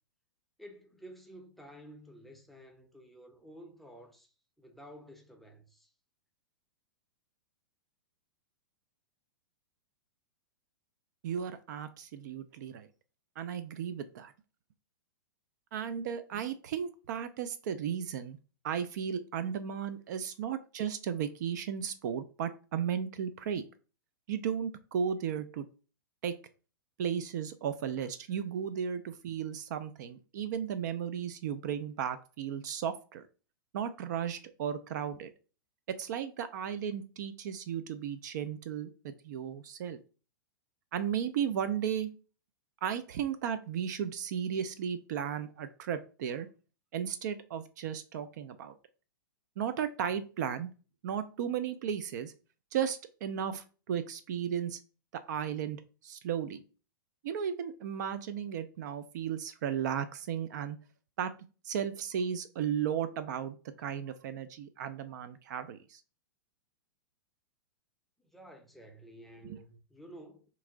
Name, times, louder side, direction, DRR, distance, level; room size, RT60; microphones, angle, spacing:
voice 1, 0.6-5.9 68.2-70.4, equal, ahead, 0.6 m, -52 dB
voice 2, 11.2-12.9 13.4-14.3 15.7-18.4 18.6-23.6 24.3-25.7 26.2-26.4 27.0-33.2 33.7-35.3 35.9-40.0 40.9-42.1 42.8-46.5 46.9-48.7 49.6-50.7 51.0-52.3 52.7-54.8 55.1-56.6 57.2-60.8 61.2-61.3 61.6-66.0 69.5-69.6, right 8 dB, 55° right, 0.3 m, -35 dB
2.9 x 2.5 x 3.6 m
figure-of-eight pair, 105°, 12 cm